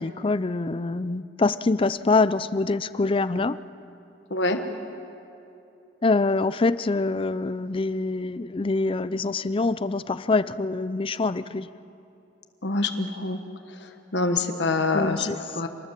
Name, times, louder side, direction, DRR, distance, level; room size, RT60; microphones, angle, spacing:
voice 1, 0.0-3.6 6.0-11.7 14.9-15.4, left 3 dB, 30° left, 16 dB, 0.5 m, -25 dB
voice 2, 12.6-13.4 14.1-15.2 15.5-15.7, left 3 dB, 75° left, 6 dB, 1.4 m, -25 dB
26.5 x 20.0 x 7.5 m, 2.8 s
head